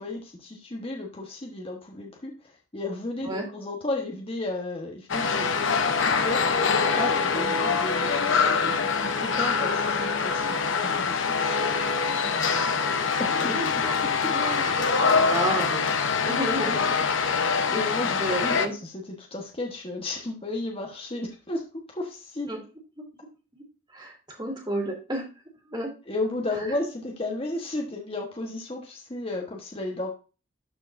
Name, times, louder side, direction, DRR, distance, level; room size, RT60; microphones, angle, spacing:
voice 1, 0.0-11.6 13.2-14.4 16.6-16.7 17.7-22.5 26.1-30.1, left 2 dB, 25° left, 1 dB, 1.1 m, -34 dB
sound 1, 5.1-18.7, left 5 dB, 65° left, 0.8 m, -24 dB
voice 2, 12.2-13.1 13.4-14.9 15.2-15.9 16.2-17.0 18.2-18.7 22.5-22.6 23.9-25.2 25.7-25.9, right 1 dB, 20° right, 0 dB, 2.2 m, -32 dB
12.0 x 4.6 x 2.5 m, 0.32 s
head